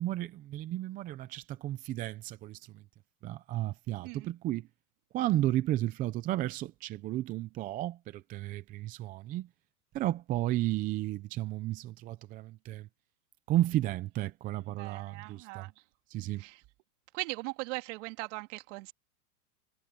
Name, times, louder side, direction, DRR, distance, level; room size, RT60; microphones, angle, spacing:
voice 1, 0.0-2.8 3.2-4.7 5.1-9.5 9.9-12.9 13.5-15.7 16.1-16.4, right 14 dB, 20° right, 0.6 m, -33 dB
voice 2, 14.7-15.7 16.4-16.6 17.1-18.9, right 24 dB, 50° right, 2.8 m, -39 dB
hypercardioid pair, 140°, 46 cm